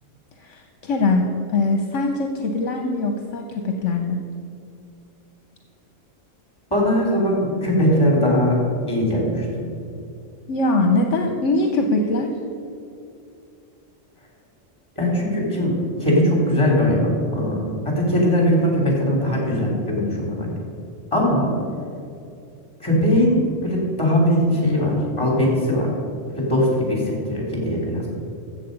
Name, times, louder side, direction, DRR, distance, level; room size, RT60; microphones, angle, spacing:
voice 1, 0.4-4.2 10.5-12.3, left 2 dB, 70° left, 3 dB, 1.2 m, -22 dB
voice 2, 6.7-8.6 8.9-9.7 14.9-20.5 21.1-21.5 22.8-26.0 26.3-28.1, equal, 20° left, -2 dB, 3.3 m, -20 dB
14.0 x 7.7 x 5.2 m, 2.5 s
omnidirectional pair, 1.4 m